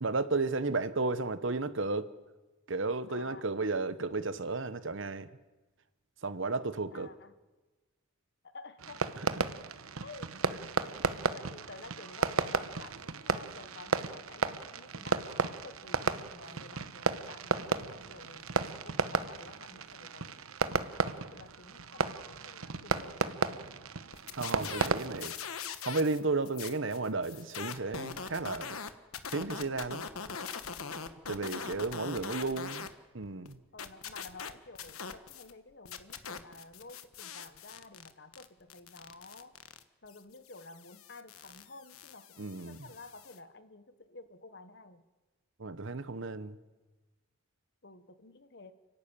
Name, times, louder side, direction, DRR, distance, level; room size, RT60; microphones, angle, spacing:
voice 1, 0.0-2.1 2.7-5.3 6.2-7.1 10.5-10.6 24.3-25.3 25.8-28.8 29.3-30.0 31.3-32.8 33.1-33.6 42.4-42.8 45.6-46.6, right 3 dB, 65° right, 1.0 m, -33 dB
voice 2, 3.1-3.4 6.9-7.3 8.4-9.0 10.0-11.0 11.2-23.7 31.4-31.7 32.0-32.5 33.7-39.5 40.0-45.0 47.8-48.7, left 3 dB, 55° left, 1.3 m, -52 dB
Fireworks, 8.8-25.3, right 4 dB, 85° right, 1.0 m, -34 dB
sound 1, 24.1-26.2 26.4-32.9 33.2-35.5 35.8-43.4, left 6 dB, 90° left, 1.3 m, -42 dB
30.0 x 11.5 x 9.0 m
head